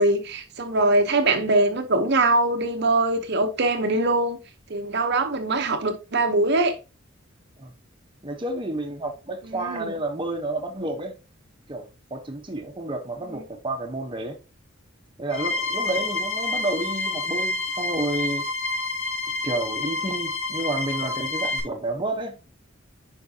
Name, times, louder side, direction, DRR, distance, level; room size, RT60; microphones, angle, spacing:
voice 1, 0.0-4.4 4.7-6.8 9.5-9.9, right 2 dB, 55° right, 0.9 m, -22 dB
voice 2, 8.2-11.2 11.7-14.4 15.2-18.5 19.4-22.5, right 2 dB, 25° right, 1.0 m, -30 dB
sound 1, 15.3-21.6, left 3 dB, 75° left, 4.3 m, -28 dB
9.5 x 5.3 x 2.8 m
head